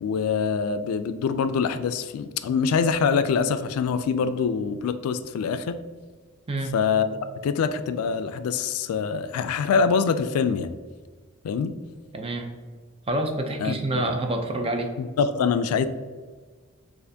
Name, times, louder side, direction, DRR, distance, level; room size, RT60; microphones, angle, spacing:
voice 1, 0.0-5.8 6.7-7.1 7.4-10.7 11.4-11.7 13.6-14.1 15.0-15.9, left 6 dB, 85° left, 12 dB, 0.3 m, -24 dB
voice 2, 12.1-12.5 13.1-14.9, right 2 dB, 25° right, 4 dB, 0.4 m, -27 dB
6.5 x 2.5 x 2.7 m, 1.5 s
head